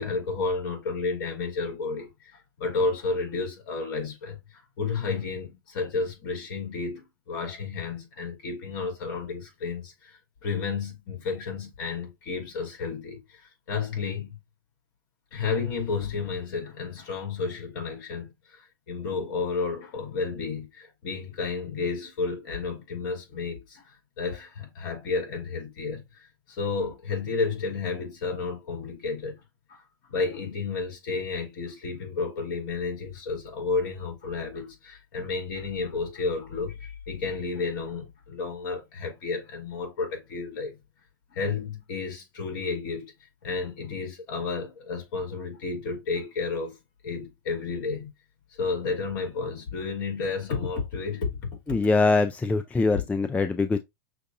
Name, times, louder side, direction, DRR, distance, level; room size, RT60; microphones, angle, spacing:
voice 1, 0.0-14.4 15.3-29.4 29.7-29.8 30.1-40.8 41.3-43.1 43.4-46.8 47.0-48.1 48.5-51.4 51.7-51.8 52.9-53.0, left 4 dB, 65° left, 2.8 m, -32 dB
voice 2, 51.7-53.8, left 3 dB, 10° left, 0.4 m, -23 dB
6.4 x 2.6 x 2.6 m
hypercardioid pair, 100°, 12 cm